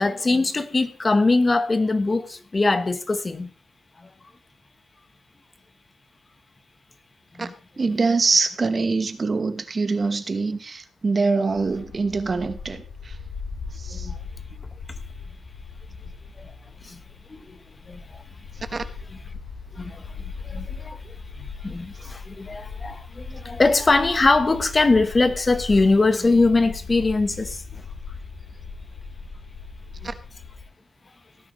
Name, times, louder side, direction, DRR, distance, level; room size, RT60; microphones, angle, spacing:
voice 1, 0.0-3.5 4.0-4.1 7.3-7.5 13.9-14.2 16.4-16.5 16.8-17.0 17.3-17.6 17.9-18.2 19.1-19.2 19.7-27.8 30.0-30.1, left 3 dB, 30° left, 1.1 m, -22 dB
voice 2, 7.8-13.1 13.8-14.1 18.7-18.8 30.0-30.1, right 4 dB, 40° right, 1.2 m, -24 dB
Bark, 11.5-30.6, left 4 dB, 65° left, 4.5 m, -38 dB
17.5 x 10.0 x 3.2 m
cardioid pair, 100°, 0 cm